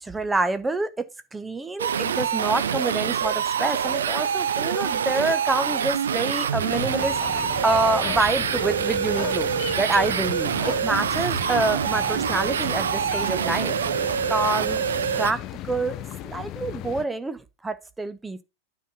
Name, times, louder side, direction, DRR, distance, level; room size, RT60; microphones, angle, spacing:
voice 1, 0.0-13.8 14.3-14.9 15.1-18.4, right 3 dB, 10° right, 0.8 m, -27 dB
sound 1, 1.8-15.3, right 8 dB, 65° right, 0.5 m, -25 dB
sound 2, 6.7-17.1, left 13 dB, 35° left, 0.5 m, -36 dB
9.4 x 4.1 x 5.6 m
figure-of-eight pair, 90°, 0 cm